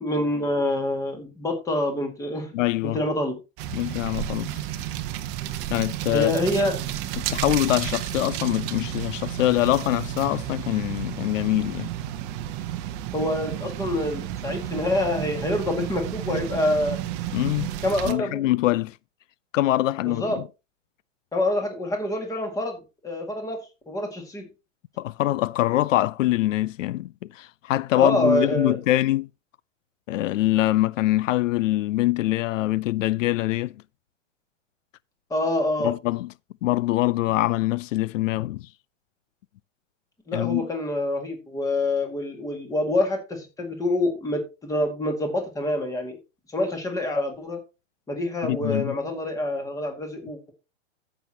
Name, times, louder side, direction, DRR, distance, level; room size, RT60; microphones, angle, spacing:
voice 1, 0.0-2.6 2.9-3.4 6.1-6.8 13.1-17.0 17.8-18.5 20.1-20.4 21.3-23.6 23.9-24.5 28.0-28.8 35.3-35.9 40.3-46.2 46.5-47.6 48.1-50.5, left 1 dB, 10° left, 1.9 m, -26 dB
voice 2, 2.5-3.0 3.7-4.6 5.7-6.3 7.2-11.9 17.3-17.7 18.1-19.0 19.5-20.3 25.0-29.3 30.1-33.7 35.8-36.3 36.6-38.7 40.3-40.6 48.4-49.0, left 16 dB, 85° left, 0.5 m, -24 dB
sound 1, 3.6-18.1, right 12 dB, 30° right, 0.8 m, -32 dB
14.0 x 6.3 x 2.9 m
hypercardioid pair, 155°, 37 cm